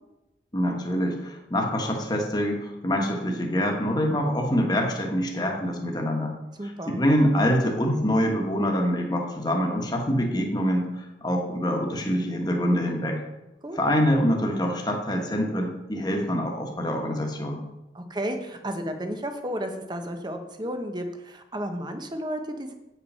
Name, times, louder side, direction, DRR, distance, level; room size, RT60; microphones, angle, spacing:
voice 1, 0.5-6.3 6.6-13.2 13.7-17.6, equal, 25° left, 1 dB, 1.3 m, -25 dB
voice 2, 6.6-7.0 13.6-13.8 17.9-22.7, equal, 25° right, 6 dB, 0.9 m, -32 dB
8.8 x 5.9 x 5.5 m, 0.97 s
head